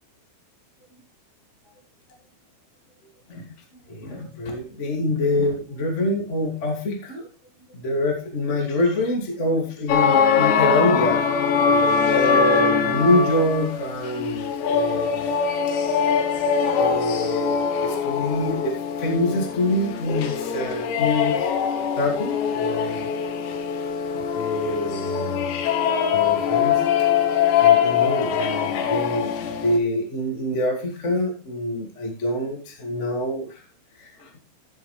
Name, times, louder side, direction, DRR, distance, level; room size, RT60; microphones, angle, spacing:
voice 1, 3.9-7.3 7.7-11.2 11.6-15.3 16.8-18.7 19.0-21.6 21.9-23.1 24.3-25.5 26.1-26.8 27.6-33.6 34.0-34.4, left 1 dB, 25° left, 0 dB, 1.6 m, -25 dB
sound 1, 9.9-29.8, left 7 dB, 70° left, 3.2 m, -22 dB
14.5 x 7.9 x 3.4 m, 0.33 s
omnidirectional pair, 5.7 m